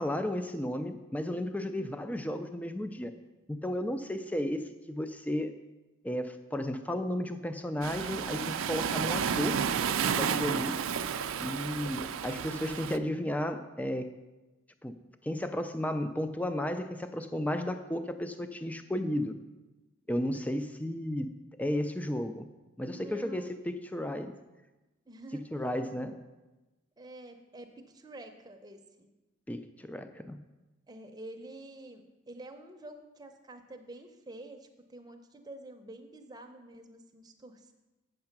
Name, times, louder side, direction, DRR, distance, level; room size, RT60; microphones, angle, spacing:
voice 1, 0.0-3.1 3.5-5.5 6.0-9.6 10.1-10.8 11.4-14.1 14.8-14.9 15.2-19.4 20.1-21.3 21.6-22.5 22.8-24.3 25.3-26.2 29.5-30.4, left 1 dB, 5° left, 9 dB, 0.4 m, -33 dB
voice 2, 1.7-2.1 20.2-20.6 22.9-23.5 25.1-25.4 27.0-29.1 30.9-37.7, right 2 dB, 20° right, 5 dB, 0.7 m, -48 dB
Waves surf, 7.8-13.0, right 7 dB, 85° right, 0.4 m, -31 dB
8.6 x 6.6 x 5.9 m, 1.1 s
head